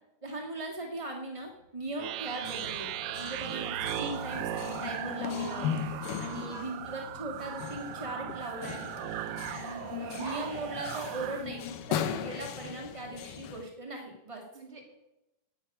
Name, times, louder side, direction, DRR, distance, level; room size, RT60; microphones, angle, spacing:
voice 1, 0.2-2.9 3.1-5.7 6.2-8.9 9.5-14.4, right 2 dB, 30° right, -1 dB, 0.5 m, -39 dB
sound 1, 1.5-11.2 11.5-11.6 11.9-12.3, left 2 dB, 60° left, 1.3 m, -53 dB
sound 2, 2.0-11.4, right 13 dB, 85° right, 1.6 m, -38 dB
sound 3, 2.4-13.6, left 9 dB, 75° left, 2.3 m, -38 dB
voice 2, 6.2-6.7 9.6-9.9 14.5-14.9, right 1 dB, 15° right, -3 dB, 2.9 m, -50 dB
14.5 x 9.5 x 5.4 m, 0.92 s
omnidirectional pair, 3.9 m